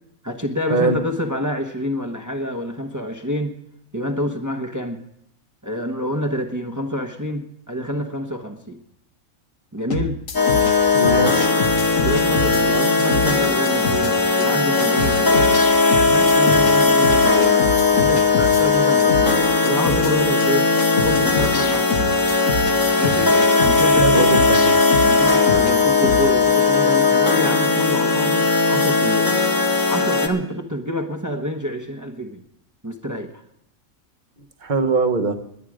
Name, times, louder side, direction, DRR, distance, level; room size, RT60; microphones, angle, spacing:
voice 1, 0.2-3.5 3.9-5.0 5.6-8.8 9.7-10.2 11.9-15.5 16.0-17.6 17.9-20.7 20.9-22.2 23.0-24.4 25.0-29.3 29.9-32.4 32.8-33.3, equal, 15° right, 4 dB, 1.0 m, -27 dB
sound 1, 9.9-10.7 11.0-12.6 13.0-13.4 13.7-14.1 14.4-14.5 14.8-16.7 17.0-18.6 19.0-19.4 19.7-20.1 20.4-20.5 20.8-22.7 23.0-25.7 26.0-26.2, left 4 dB, 70° left, 1.6 m, -26 dB
sound 2, 10.3-30.3, left 4 dB, 15° left, 1.3 m, -18 dB
voice 2, 10.9-11.5 24.0-24.7 34.6-35.3, right 3 dB, 35° right, 6 dB, 1.2 m, -21 dB
21.0 x 9.2 x 5.0 m, 0.77 s
omnidirectional pair, 1.4 m